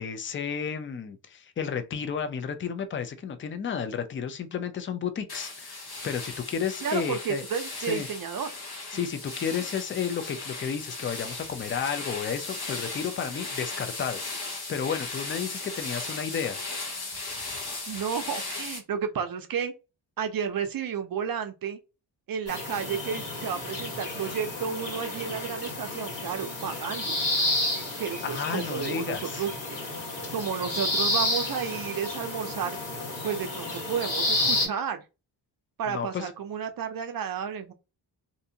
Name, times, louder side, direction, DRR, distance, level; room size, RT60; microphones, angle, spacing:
voice 1, 0.0-7.4 7.9-8.1 8.9-16.6 28.2-29.4 35.9-36.3, left 7 dB, 30° left, 0.4 m, -32 dB
sound 1, 5.3-18.8, left 3 dB, 60° left, 0.9 m, -37 dB
voice 2, 6.8-8.5 9.6-9.7 17.9-19.7 20.2-21.8 22.3-27.1 28.0-29.8 30.3-32.8 33.2-35.0 35.8-37.7, right 7 dB, 50° right, 0.5 m, -32 dB
sound 2, 22.5-34.7, left 1 dB, 75° left, 1.6 m, -31 dB
2.6 x 2.4 x 2.7 m
wide cardioid pair, 120°, 44 cm